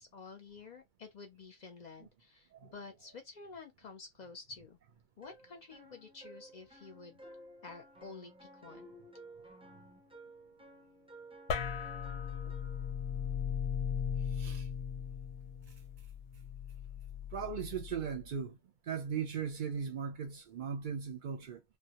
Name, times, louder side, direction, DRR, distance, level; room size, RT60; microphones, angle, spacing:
voice 1, 0.0-4.8 5.2-7.2 7.6-8.9, left 4 dB, 50° left, 0.6 m, -50 dB
sound 1, 5.2-12.9, right 1 dB, 10° right, 0.3 m, -55 dB
sound 2, 11.5-18.2, left 7 dB, 85° left, 0.8 m, -38 dB
voice 2, 14.3-14.7 17.3-18.6 18.8-21.6, right 7 dB, 60° right, 0.6 m, -38 dB
2.2 x 2.1 x 2.7 m
omnidirectional pair, 1.1 m